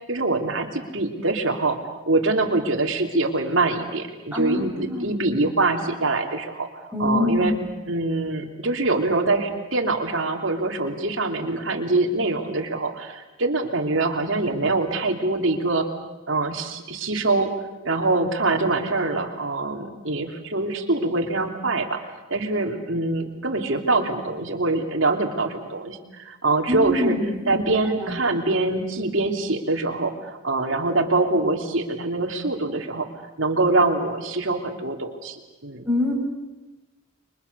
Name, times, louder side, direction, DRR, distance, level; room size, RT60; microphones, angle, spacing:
voice 1, 0.1-1.8 2.0-6.7 7.0-7.5 7.9-15.9 16.3-17.5 17.8-22.0 22.3-27.2 27.5-30.1 30.4-33.1 33.4-35.4 35.6-35.8, right 2 dB, 65° right, 3 dB, 3.0 m, -24 dB
voice 2, 4.3-5.1 6.9-7.6 26.7-27.6 28.0-28.1 35.9-36.1, left 2 dB, 5° right, -4 dB, 7.0 m, -24 dB
30.0 x 24.5 x 6.9 m, 1.1 s
head